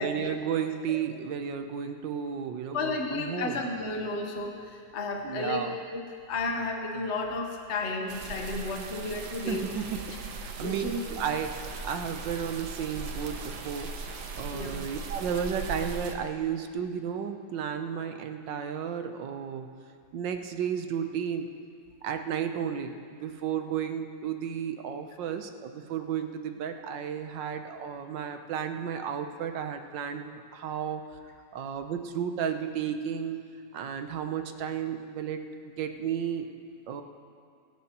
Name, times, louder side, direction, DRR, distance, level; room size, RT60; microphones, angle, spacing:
voice 1, 0.0-3.6 5.2-5.8 9.5-10.8 11.1-13.9 14.3-19.7 20.1-21.5 22.0-31.0 31.5-33.5 33.7-36.5 36.9-37.0, right 8 dB, 85° right, 7 dB, 1.5 m, -33 dB
voice 2, 2.7-5.6 5.9-9.6 10.1-10.2 10.6-11.0 14.5-14.7, left 3 dB, 45° left, 2 dB, 1.2 m, -33 dB
sound 1, 8.1-16.1, right 4 dB, 70° right, 1.5 m, -39 dB
26.5 x 10.5 x 3.0 m, 2.3 s
omnidirectional pair, 1.9 m